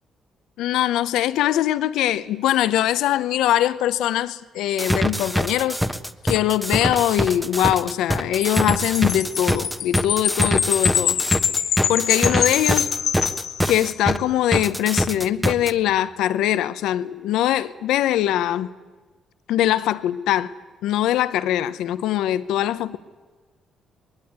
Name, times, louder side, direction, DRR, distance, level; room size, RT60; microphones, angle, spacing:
voice 1, 0.6-5.8 6.2-11.2 11.9-12.9 13.7-18.7 19.5-20.5 20.8-23.0, left 12 dB, 90° left, 0.8 m, -22 dB
sound 1, 4.8-14.2 14.5-15.7, equal, ahead, 1.2 m, -23 dB
Wind chime, 8.4-14.1, left 8 dB, 65° left, 1.4 m, -25 dB
24.0 x 21.0 x 9.4 m
cardioid pair, 90°, 0 cm